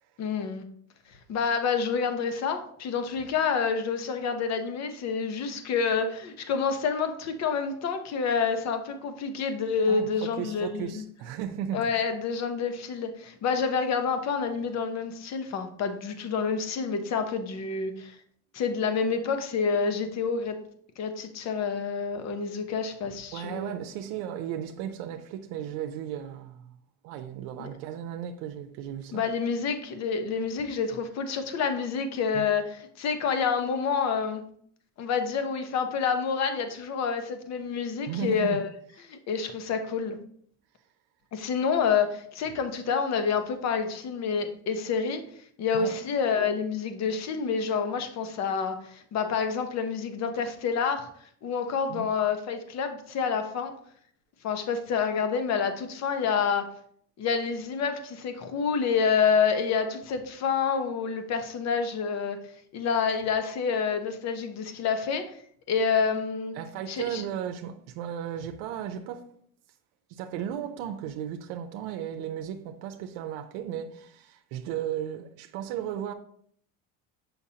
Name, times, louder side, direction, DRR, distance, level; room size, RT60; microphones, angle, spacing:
voice 1, 0.2-0.6 1.3-11.0 11.7-18.2 18.5-20.6 21.0-23.7 27.6-27.7 29.1-34.4 35.0-38.7 39.1-40.2 41.3-45.2 45.6-51.1 51.4-53.7 54.4-56.7 57.2-62.4 62.7-65.2 65.7-66.5 66.9-67.2, left 6 dB, 45° left, 0.9 m, -28 dB
voice 2, 9.9-11.8 23.3-26.8 27.0-29.2 32.3-32.5 38.1-38.6 45.7-46.0 51.9-52.0 66.5-69.3 70.1-76.1, right 9 dB, 85° right, 0.7 m, -35 dB
7.0 x 5.6 x 2.8 m
cardioid pair, 140°, 37 cm